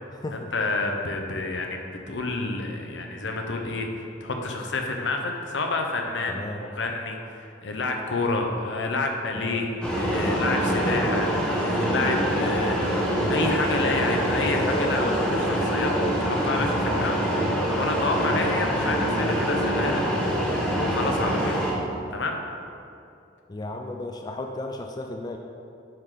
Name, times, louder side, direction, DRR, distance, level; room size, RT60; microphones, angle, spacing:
voice 1, 0.5-3.9 4.2-15.1 15.4-17.2 17.8-20.0 20.8-21.5 22.1-22.4, left 3 dB, 70° left, 3 dB, 0.9 m, -29 dB
voice 2, 6.3-6.6 9.3-9.6 10.9-11.0 14.5-15.3 16.9-17.1 18.3-18.5 23.5-25.4, left 2 dB, 20° left, 3 dB, 0.4 m, -34 dB
sound 1, 9.8-21.7, equal, 5° left, 1.2 m, -25 dB
9.4 x 3.8 x 4.9 m, 2.6 s
head